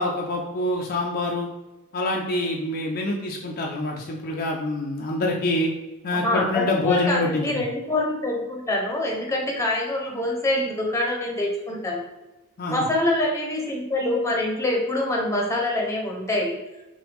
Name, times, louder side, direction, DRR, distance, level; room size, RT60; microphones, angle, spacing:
voice 1, 0.0-1.5 1.9-5.7 6.0-7.6 12.6-12.9, left 2 dB, 45° left, 0 dB, 0.5 m, -26 dB
voice 2, 6.1-12.0 12.7-16.6, left 1 dB, 15° left, 0 dB, 0.8 m, -25 dB
5.8 x 2.3 x 3.4 m, 1.1 s
head